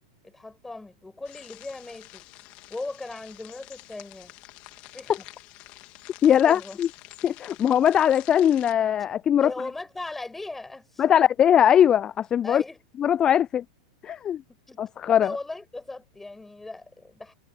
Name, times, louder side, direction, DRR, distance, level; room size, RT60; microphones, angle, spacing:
voice 1, 0.2-2.2 2.7-4.4 4.9-5.1 6.2-6.8 9.4-11.1 12.4-12.8 14.5-14.8 15.1-17.3, left 2 dB, 10° left, 7.5 m, -38 dB
sound 1, 1.2-8.7, left 22 dB, 45° left, 3.7 m, -47 dB
voice 2, 6.2-6.9 7.2-9.5 11.0-12.6 13.0-13.6 14.0-14.4 14.8-15.4, left 9 dB, 25° left, 0.4 m, -20 dB
figure-of-eight pair, 90°, 3 cm